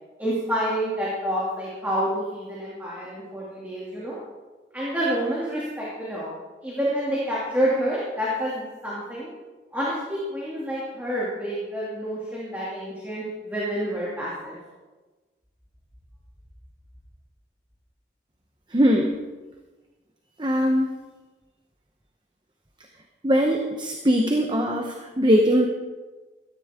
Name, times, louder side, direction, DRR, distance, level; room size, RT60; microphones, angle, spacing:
voice 1, 0.2-4.2 4.7-6.3 6.6-9.3 9.7-14.6, equal, 10° right, -7 dB, 2.5 m, -28 dB
voice 2, 18.7-19.2 20.4-20.9 23.2-25.7, equal, 25° right, 2 dB, 1.0 m, -21 dB
17.0 x 14.0 x 3.7 m, 1.3 s
head